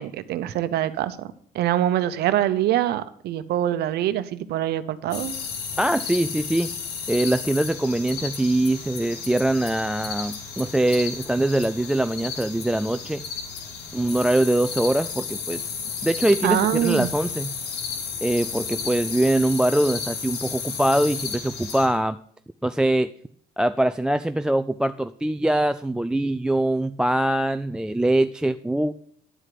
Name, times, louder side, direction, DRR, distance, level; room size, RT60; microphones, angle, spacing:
voice 1, 0.0-5.4 16.4-17.1, right 12 dB, 75° right, 13 dB, 0.8 m, -24 dB
sound 1, 5.1-21.9, left 6 dB, 80° left, 2.5 m, -33 dB
voice 2, 5.8-6.7 7.1-13.2 13.9-15.8 16.0-17.5 18.2-22.2 22.6-23.1 23.6-28.9, right 1 dB, 5° right, 13 dB, 0.3 m, -23 dB
11.0 x 4.8 x 7.6 m, 0.64 s
cardioid pair, 110°, 17 cm